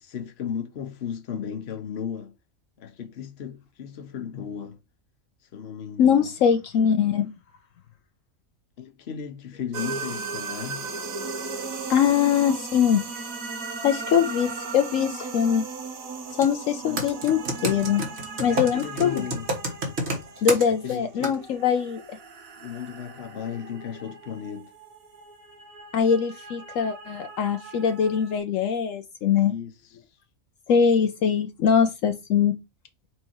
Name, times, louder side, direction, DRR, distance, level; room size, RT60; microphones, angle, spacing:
voice 1, 0.0-2.3 2.8-4.8 5.5-6.3 8.8-10.9 16.8-17.0 18.5-19.5 20.7-21.4 22.6-24.7 29.4-29.7, left 8 dB, 55° left, 1.1 m, -35 dB
voice 2, 6.0-7.3 11.9-13.0 13.8-15.6 16.4-18.1 18.4-19.2 20.4-22.2 25.9-29.5 30.7-32.6, left 7 dB, 75° left, 1.0 m, -22 dB
sound 1, 9.7-28.4, right 4 dB, 80° right, 1.6 m, -37 dB
Computer keyboard, 16.3-16.5 17.0-21.0 21.2-21.4, right 1 dB, 50° right, 1.8 m, -28 dB
4.6 x 4.4 x 4.6 m
omnidirectional pair, 1.4 m